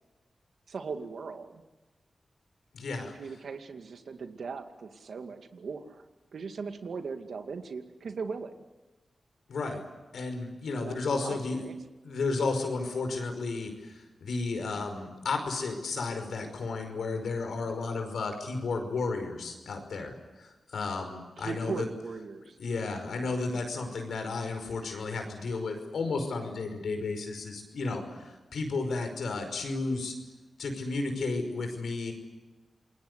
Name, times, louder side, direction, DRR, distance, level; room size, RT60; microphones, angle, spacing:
voice 1, 0.7-1.6 3.1-6.0 6.3-8.5 10.7-11.8 21.4-22.6, right 5 dB, 80° right, 6 dB, 2.3 m, -39 dB
voice 2, 2.7-3.1 9.5-9.8 10.1-11.7 12.0-21.9 22.6-30.1 30.6-32.1, left 3 dB, 85° left, 6 dB, 5.4 m, -33 dB
28.0 x 21.0 x 8.2 m, 1.1 s
cardioid pair, 60°, 0 cm